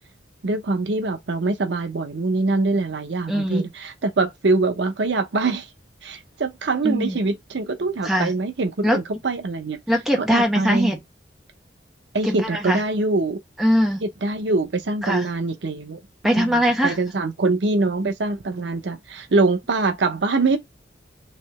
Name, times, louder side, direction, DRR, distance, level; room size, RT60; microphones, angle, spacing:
voice 1, 0.4-5.7 6.0-9.8 10.2-10.9 12.1-13.4 14.0-16.0 16.3-20.6, right 3 dB, 75° right, 0.7 m, -24 dB
voice 2, 3.3-3.7 6.8-7.2 8.0-8.3 8.8-9.0 9.9-11.0 12.2-12.8 13.6-14.0 15.0-15.3 16.2-16.9, equal, ahead, 0.9 m, -21 dB
3.3 x 2.7 x 3.0 m
head